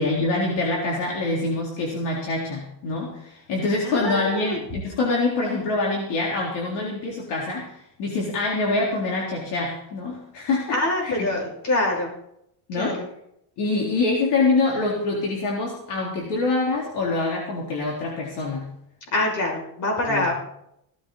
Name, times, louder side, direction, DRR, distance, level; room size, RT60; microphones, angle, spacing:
voice 1, 0.0-11.3 12.7-13.0 13.6-18.7 20.1-20.3, left 3 dB, 60° left, -2 dB, 3.8 m, -25 dB
voice 2, 3.8-4.6 10.7-12.1 12.8-13.0 19.1-20.3, left 1 dB, 40° left, 0 dB, 6.1 m, -25 dB
17.5 x 13.5 x 4.0 m, 0.75 s
cardioid pair, 160°, 47 cm